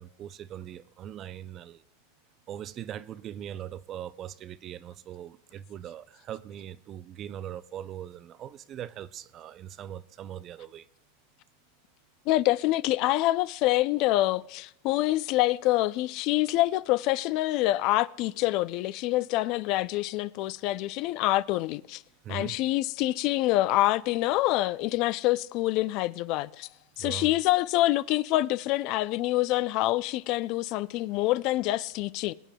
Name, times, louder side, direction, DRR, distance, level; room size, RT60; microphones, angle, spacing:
voice 1, 0.0-1.8 2.5-10.9 22.2-22.6 27.0-27.4, right 10 dB, 30° right, 0.3 m, -40 dB
voice 2, 12.3-22.0 22.3-26.7 27.0-32.3, left 17 dB, 45° left, 0.3 m, -26 dB
23.0 x 8.9 x 2.2 m
supercardioid pair, 145°, 0 cm